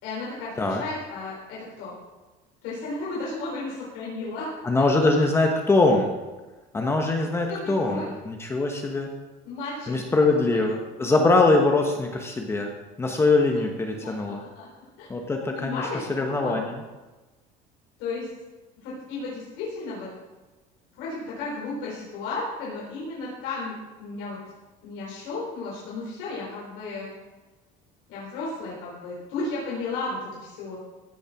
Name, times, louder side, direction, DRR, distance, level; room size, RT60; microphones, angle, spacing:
voice 1, 0.0-2.0 2.6-4.5 4.8-4.9 7.5-8.1 9.4-10.0 10.5-10.7 14.0-14.7 15.0-15.1 15.5-16.6 18.0-18.3 18.8-20.1 21.0-23.7 24.0-24.4 24.8-27.1 28.1-30.8, left 3 dB, 80° left, -6 dB, 4.1 m, -34 dB
voice 2, 4.6-6.1 6.7-9.1 9.9-12.7 13.0-14.4 15.1-16.8, left 2 dB, 15° left, 2 dB, 1.1 m, -22 dB
15.5 x 6.6 x 5.8 m, 1.2 s
cardioid pair, 165°, 18 cm